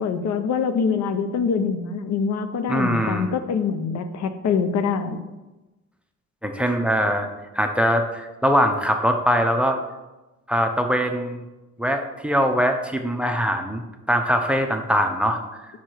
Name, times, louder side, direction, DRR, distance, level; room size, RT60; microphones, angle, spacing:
voice 1, 0.0-5.2, left 6 dB, 65° left, 9 dB, 0.7 m, -24 dB
voice 2, 2.7-3.3 6.4-7.3 7.5-9.8 10.5-11.4 11.8-15.4, equal, 5° right, 5 dB, 0.7 m, -22 dB
5.6 x 4.7 x 4.5 m, 1.1 s
cardioid pair, 90°, 30 cm